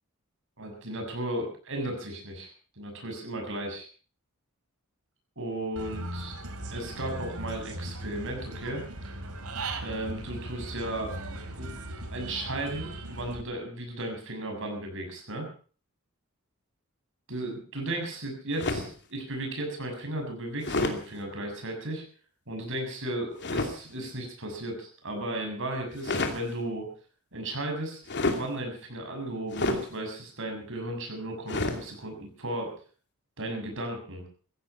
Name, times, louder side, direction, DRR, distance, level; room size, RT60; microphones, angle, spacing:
voice 1, 0.6-3.9 5.4-6.4 6.7-8.8 9.8-11.1 11.6-11.8 12.1-15.5 17.3-22.0 22.5-26.9 27.3-28.0 28.2-32.8 33.4-34.3, right 1 dB, 65° right, 3 dB, 6.9 m, -35 dB
Human voice / Bird, 5.8-13.4, right 1 dB, 85° right, 2.7 m, -38 dB
sound 1, 18.6-19.0 20.6-21.0 23.4-23.7 25.9-26.4 28.1-28.5 29.5-29.9 31.5-31.8, left 2 dB, 55° left, 2.7 m, -28 dB
16.5 x 15.0 x 5.7 m, 0.41 s
head